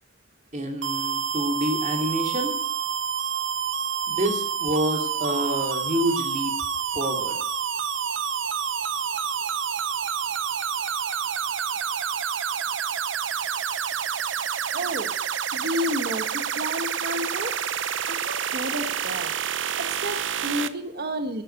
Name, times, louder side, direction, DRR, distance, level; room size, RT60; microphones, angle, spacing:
voice 1, 0.5-2.5 4.1-6.5 6.9-7.4, equal, 40° right, 2 dB, 2.4 m, -27 dB
sound 1, 0.8-20.7, right 8 dB, 80° right, 0.7 m, -28 dB
voice 2, 14.7-15.1 15.5-17.5 18.1-21.4, equal, 55° right, 7 dB, 1.4 m, -31 dB
11.0 x 9.1 x 9.4 m, 0.68 s
head